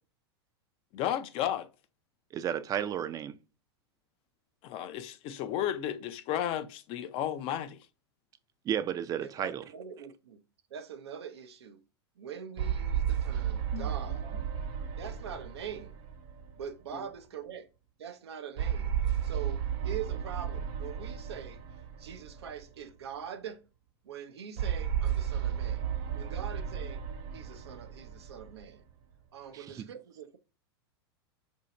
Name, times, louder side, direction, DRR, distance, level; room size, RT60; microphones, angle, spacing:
voice 1, 0.9-1.7 4.6-7.8 13.7-13.9, left 11 dB, 45° left, 0.5 m, -33 dB
voice 2, 2.3-3.4 8.7-9.6 29.5-29.9, right 9 dB, 25° right, 0.4 m, -33 dB
voice 3, 9.2-10.4 10.7-11.8 12.2-14.4 15.0-16.0 16.6-17.7 18.0-18.9 19.2-21.6 22.0-23.6 24.0-25.9 26.1-27.0 27.3-28.8 29.3-30.4, right 8 dB, 85° right, 0.6 m, -43 dB
sound 1, 12.6-17.1 18.6-22.9 24.6-29.1, right 9 dB, 60° right, 1.0 m, -34 dB
2.7 x 2.7 x 4.1 m
hypercardioid pair, 110°, 14 cm